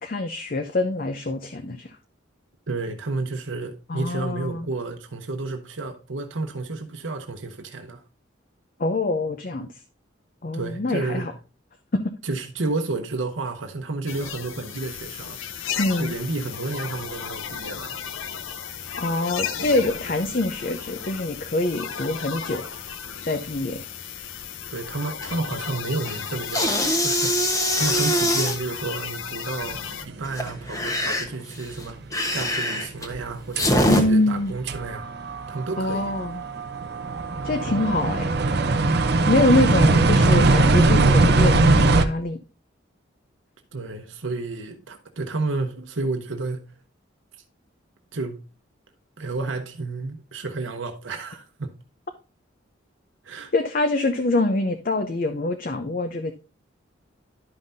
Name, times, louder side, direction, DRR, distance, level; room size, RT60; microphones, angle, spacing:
voice 1, 0.0-2.0 3.9-4.7 8.8-9.7 10.4-11.3 11.9-12.0 15.8-16.1 19.0-22.6 23.2-23.8 33.8-34.5 35.8-36.4 37.4-38.4 39.3-42.4 53.5-56.3, left 2 dB, 45° left, 0.6 m, -24 dB
voice 2, 2.7-8.0 10.5-11.3 12.2-15.4 16.0-18.0 24.7-27.5 27.7-32.0 32.3-35.1 35.5-36.1 43.7-46.7 48.1-48.4 49.2-51.8 53.2-53.5, right 3 dB, 80° right, 0.9 m, -31 dB
sound 1, 14.1-30.1, left 7 dB, 85° left, 0.7 m, -34 dB
sound 2, 25.2-25.6 25.9-28.6 30.2-34.0, equal, 15° left, 1.0 m, -23 dB
sound 3, 30.8-30.9 33.6-33.7 34.3-34.4 34.7-42.0, right 2 dB, 55° right, 0.6 m, -20 dB
11.5 x 5.6 x 2.6 m
head